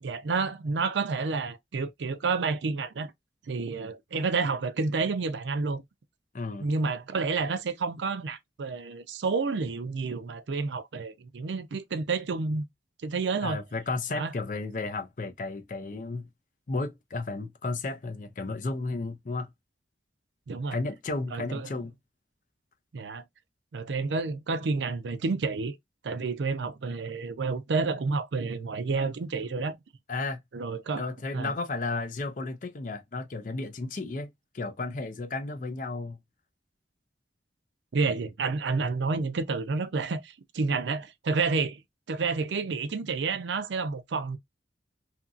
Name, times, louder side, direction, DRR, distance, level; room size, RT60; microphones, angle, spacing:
voice 1, 0.0-3.1 3.5-5.8 6.6-12.6 13.0-13.6 14.1-14.3 20.5-20.8 21.3-21.7 22.9-23.2 23.7-25.8 26.0-29.8 30.5-31.0 31.3-31.5 37.9-41.8 42.1-44.4, right 4 dB, 85° right, 0.5 m, -30 dB
voice 2, 6.3-6.7 13.4-16.3 16.7-19.5 20.7-21.9 30.1-30.4 31.0-34.3 34.5-36.2, left 3 dB, 45° left, 0.5 m, -33 dB
2.8 x 2.6 x 2.3 m
head